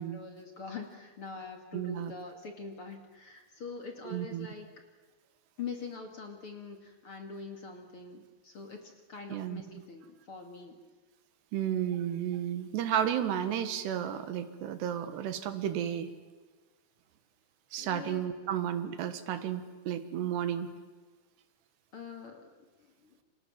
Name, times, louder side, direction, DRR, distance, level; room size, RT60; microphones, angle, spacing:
voice 1, 0.0-4.7 5.6-10.8 17.8-18.2 18.5-18.6 21.9-23.2, left 4 dB, 40° left, 4 dB, 2.5 m, -44 dB
voice 2, 1.7-2.1 4.1-4.5 9.3-9.6 11.5-16.1 17.7-20.7, right 10 dB, 85° right, 10 dB, 3.7 m, -32 dB
29.0 x 27.0 x 7.4 m, 1.3 s
omnidirectional pair, 4.7 m